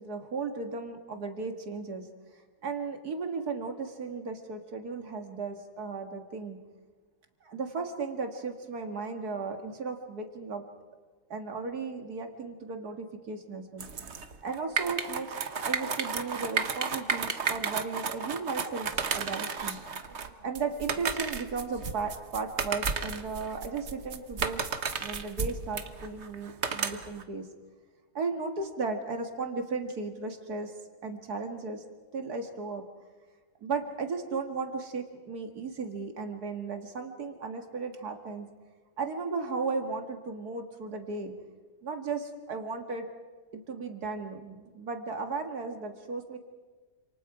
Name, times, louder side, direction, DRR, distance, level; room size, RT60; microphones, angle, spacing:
voice 1, 0.0-2.1 2.6-6.6 7.4-10.6 11.3-13.9 14.4-15.3 15.6-19.8 20.4-24.7 25.0-27.5 28.1-30.7 31.0-31.8 32.1-32.9 33.6-38.5 39.0-41.4 41.8-43.1 43.5-46.4, right 4 dB, 60° right, 5 dB, 2.3 m, -35 dB
sound 1, 13.8-27.2, right 5 dB, 45° right, 1.3 m, -33 dB
28.5 x 27.0 x 4.9 m, 1.4 s
omnidirectional pair, 1.9 m